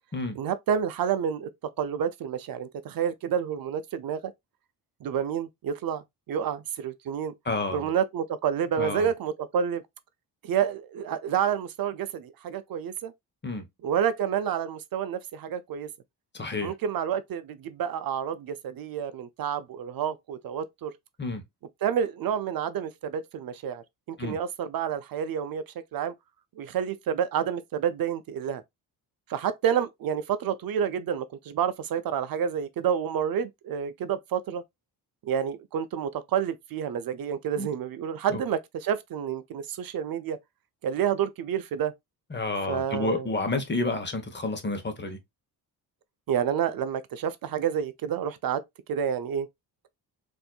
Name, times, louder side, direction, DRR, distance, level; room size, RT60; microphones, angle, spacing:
voice 1, 0.3-1.5 1.8-4.3 5.0-6.0 6.3-7.3 7.7-9.8 10.4-13.1 13.8-15.9 16.6-20.9 21.8-25.6 25.9-26.1 26.6-28.6 29.3-34.6 35.2-40.4 40.8-41.9 42.7-43.3 46.3-48.6 48.9-49.5, right 8 dB, 60° right, 0.5 m, -29 dB
voice 2, 7.4-7.9 8.8-9.1 13.4-13.6 16.3-16.7 21.2-21.4 24.2-24.4 37.6-37.7 38.3-38.4 42.3-45.2, left 2 dB, 25° left, 1.1 m, -30 dB
4.1 x 2.7 x 2.3 m
cardioid pair, 70°, 41 cm